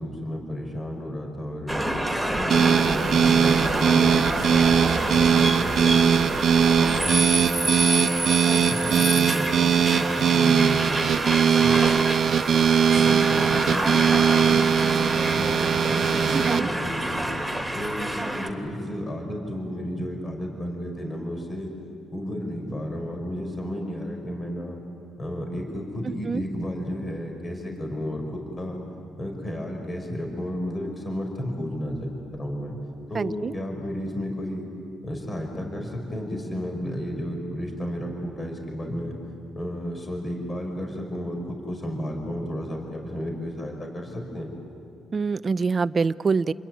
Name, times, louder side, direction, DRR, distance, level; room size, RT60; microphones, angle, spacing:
voice 1, 0.0-1.9 2.3-4.8 5.0-8.0 8.5-11.1 11.6-11.9 12.9-17.3 17.7-21.7 22.1-24.8 25.2-28.8 29.2-32.8 33.1-34.6 35.0-39.2 39.5-44.5, equal, 25° left, 3 dB, 5.1 m, -32 dB
sound 1, 1.7-18.5, right 1 dB, ahead, 3.0 m, -28 dB
sound 2, 2.5-16.6, right 7 dB, 60° right, 1.1 m, -21 dB
voice 2, 16.3-16.7 26.0-26.4 33.1-33.5 45.1-46.5, right 5 dB, 35° right, 16 dB, 0.6 m, -25 dB
28.5 x 22.0 x 9.5 m, 2.6 s
cardioid pair, 90°, 0 cm